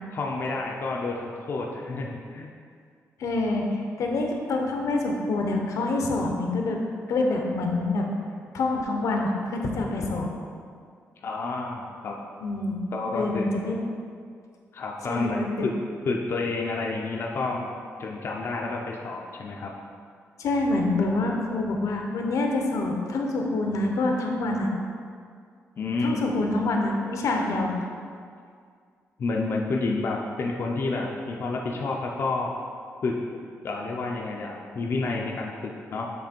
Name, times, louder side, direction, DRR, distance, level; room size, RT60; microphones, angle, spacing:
voice 1, 0.1-2.5 11.2-12.2 12.9-13.5 14.7-15.7 16.0-17.7 18.0-19.7 25.8-26.2 29.2-32.5 33.0-33.2 33.6-36.1, left 3 dB, 45° left, -1 dB, 0.5 m, -29 dB
voice 2, 3.2-6.8 7.1-8.1 8.5-10.3 12.4-12.8 13.1-13.8 15.1-15.7 20.4-24.7 26.0-27.8, left 2 dB, 85° left, 1 dB, 0.8 m, -26 dB
7.4 x 3.2 x 4.4 m, 2.2 s
wide cardioid pair, 175°, 5 cm